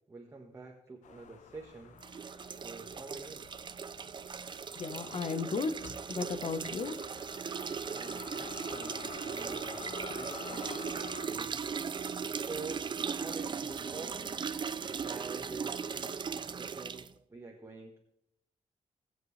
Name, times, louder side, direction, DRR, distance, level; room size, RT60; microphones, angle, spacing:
voice 1, 0.1-2.0 2.5-3.5 7.9-11.6 12.3-14.3 15.0-18.0, right 3 dB, 25° right, 0 dB, 1.4 m, -47 dB
sound 1, 1.0-11.3, left 8 dB, 90° left, 0.7 m, -49 dB
sound 2, 2.0-17.1, right 6 dB, 40° right, 0.5 m, -38 dB
voice 2, 4.4-7.1, left 4 dB, 55° left, 10 dB, 1.0 m, -36 dB
18.5 x 7.8 x 3.2 m, 0.78 s
cardioid pair, 110°, 12 cm